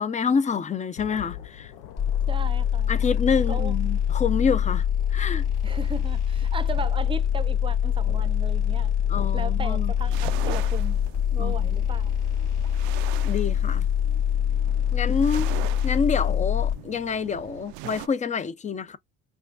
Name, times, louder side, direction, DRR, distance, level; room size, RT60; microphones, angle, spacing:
voice 1, 0.0-1.7 2.9-5.4 9.1-9.9 11.4-11.6 13.2-13.9 14.9-15.5 15.8-19.0, left 6 dB, 25° left, 0.6 m, -27 dB
Thunder, 0.9-17.6, left 11 dB, 90° left, 0.7 m, -46 dB
sound 1, 2.0-16.7, left 9 dB, 60° left, 2.6 m, -24 dB
voice 2, 2.3-3.1 3.5-3.7 5.6-8.9 9.3-11.0 11.3-12.1, right 4 dB, 15° right, 0.7 m, -36 dB
sound 2, 10.0-18.1, right 17 dB, 85° right, 0.5 m, -41 dB
5.6 x 2.3 x 2.5 m
supercardioid pair, 95°, 31 cm